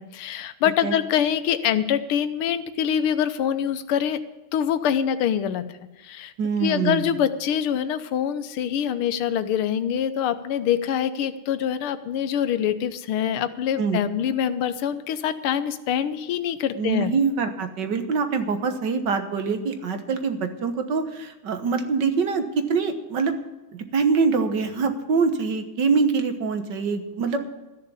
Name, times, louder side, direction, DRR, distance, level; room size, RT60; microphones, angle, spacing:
voice 1, 0.0-4.2 4.5-5.6 6.0-6.3 6.6-17.1, left 9 dB, 80° left, 11 dB, 1.7 m, -25 dB
voice 2, 6.4-7.2 13.8-14.0 16.8-23.4 23.9-27.4, right 5 dB, 55° right, 8 dB, 1.8 m, -24 dB
14.0 x 6.8 x 9.8 m, 1.1 s
omnidirectional pair, 2.4 m